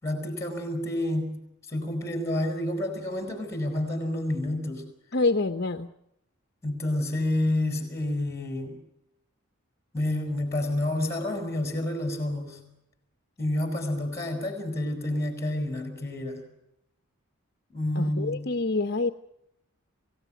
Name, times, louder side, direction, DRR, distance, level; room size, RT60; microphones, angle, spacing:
voice 1, 0.0-1.4 1.7-4.9 6.6-8.8 9.9-12.6 13.4-16.5 17.7-18.5, left 1 dB, 15° left, 5 dB, 6.5 m, -29 dB
voice 2, 5.1-5.9 18.0-19.1, left 3 dB, 50° left, 8 dB, 0.9 m, -26 dB
27.0 x 17.5 x 9.3 m, 0.83 s
head